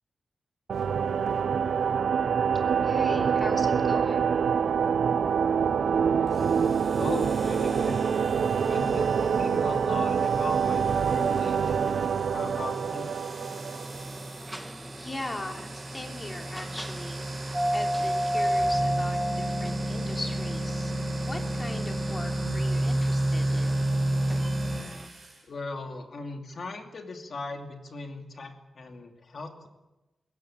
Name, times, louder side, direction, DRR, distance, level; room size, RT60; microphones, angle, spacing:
sound 1, 0.7-14.3, right 6 dB, 70° right, 0.9 m, -25 dB
voice 1, 2.8-4.4 15.0-17.3 17.7-20.9 21.3-23.9, left 1 dB, 20° left, 3 dB, 3.0 m, -39 dB
sound 2, 6.3-25.4, right 1 dB, 30° right, 5.5 m, -33 dB
voice 2, 7.0-8.0 8.7-11.8 12.3-13.1 25.5-29.7, left 3 dB, 45° left, 4 dB, 2.7 m, -38 dB
sound 3, 10.1-25.1, equal, 5° right, 1.3 m, -35 dB
21.5 x 16.5 x 8.9 m, 1.0 s
wide cardioid pair, 155°, 0 cm